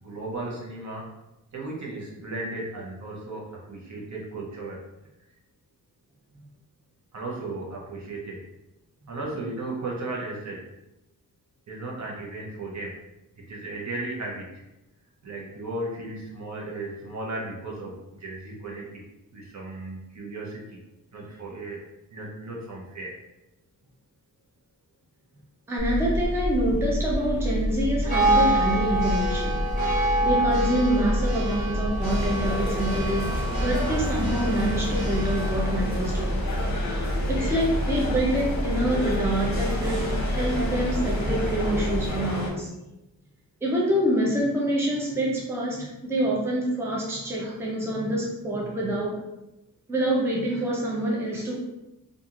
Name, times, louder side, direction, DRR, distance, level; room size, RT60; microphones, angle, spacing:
voice 1, 0.0-1.1 1.5-4.8 7.1-8.4 9.1-10.6 11.7-12.9 13.5-14.5 15.2-17.9 18.2-18.9 19.3-20.6 21.1-21.8 22.1-23.1, right 2 dB, 50° right, -3 dB, 0.8 m, -35 dB
voice 2, 25.7-29.6 30.2-36.4 36.9-42.7 43.6-49.2 49.9-51.6, right 1 dB, 5° right, -4 dB, 0.6 m, -26 dB
Church bell, 25.8-42.1, equal, 85° right, 0.8 m, -28 dB
sound 1, 28.0-38.3, right 1 dB, 25° right, 1.2 m, -29 dB
sound 2, 32.0-42.5, left 2 dB, 50° left, 0.8 m, -31 dB
2.8 x 2.5 x 2.4 m, 0.92 s
wide cardioid pair, 100°, 36 cm